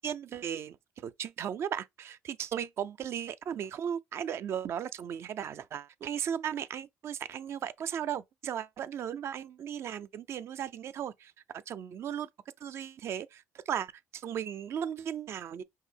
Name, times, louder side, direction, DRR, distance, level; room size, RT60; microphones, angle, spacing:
voice 1, 0.0-12.3 12.6-15.6, right 9 dB, 55° right, 0.4 m, -36 dB
5.4 x 2.1 x 3.4 m
supercardioid pair, 75°, 5 cm